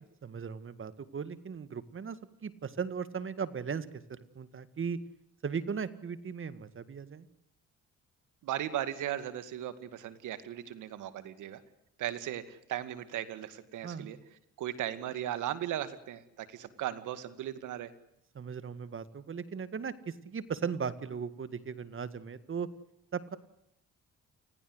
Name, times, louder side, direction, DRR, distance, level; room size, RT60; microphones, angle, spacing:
voice 1, 0.2-2.2 2.4-5.0 5.4-7.3 13.8-14.1 18.3-22.7 23.1-23.4, right 6 dB, 45° right, 15 dB, 2.0 m, -37 dB
voice 2, 8.4-11.6 12.0-14.2 14.6-17.9, right 12 dB, 85° right, 13 dB, 2.4 m, -37 dB
29.0 x 21.0 x 8.1 m, 0.81 s
cardioid pair, 90°, 30 cm